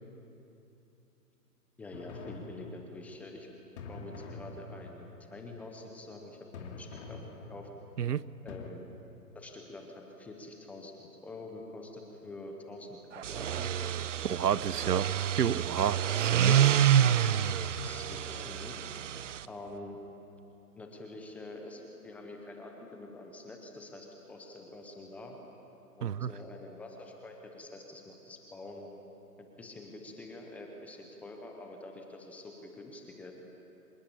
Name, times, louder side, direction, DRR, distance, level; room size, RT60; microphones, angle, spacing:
voice 1, 1.8-3.5 3.9-7.2 7.5-7.7 8.4-8.8 9.3-13.9 17.8-18.8 19.5-20.0 20.8-25.4 26.0-28.9 29.4-33.3, left 2 dB, 5° left, 2 dB, 0.7 m, -46 dB
sound 1, 1.9-3.1 3.8-5.1 6.5-7.9 8.5-8.7, left 3 dB, 45° left, 2.8 m, -45 dB
sound 2, 13.2-19.4, right 10 dB, 50° right, 0.7 m, -28 dB
voice 2, 14.3-16.8 26.0-26.3, right 9 dB, 75° right, 19 dB, 0.9 m, -30 dB
26.0 x 20.0 x 8.3 m, 2.9 s
hypercardioid pair, 145°, 48 cm